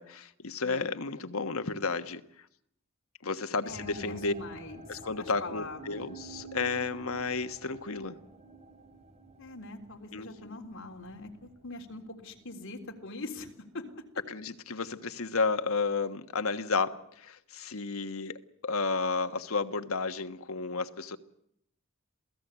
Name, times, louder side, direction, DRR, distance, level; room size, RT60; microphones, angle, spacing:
voice 1, 0.0-2.2 3.2-4.3 4.9-8.2 10.1-10.3 14.3-18.4 18.6-21.2, left 4 dB, 85° left, 1.3 m, -32 dB
voice 2, 3.6-4.8 5.2-6.0 9.4-13.5 13.7-13.9, left 2 dB, 65° left, 3.6 m, -42 dB
sound 1, 3.7-14.8 15.1-15.7 16.3-16.4, right 3 dB, 30° right, 3.2 m, -51 dB
27.5 x 17.0 x 8.2 m
head